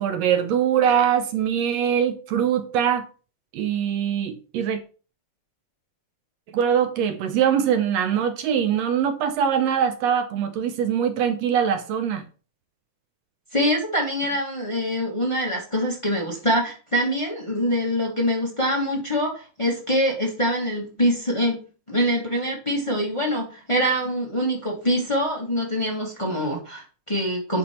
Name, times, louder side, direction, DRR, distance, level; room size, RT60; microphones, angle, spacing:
voice 1, 0.0-3.1 3.5-4.8 6.5-12.2, right 8 dB, 75° right, 1.6 m, -22 dB
voice 2, 13.5-21.6 21.9-27.6, equal, 30° left, 0.5 m, -24 dB
10.0 x 3.4 x 4.3 m
omnidirectional pair, 3.6 m